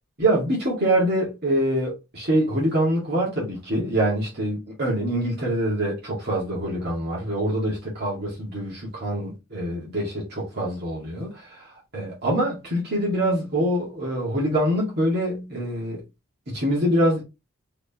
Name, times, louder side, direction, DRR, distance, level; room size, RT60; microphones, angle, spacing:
voice 1, 0.2-16.0 16.5-17.2, right 1 dB, 50° right, 2.0 m, -25 dB
4.6 x 3.8 x 2.9 m
head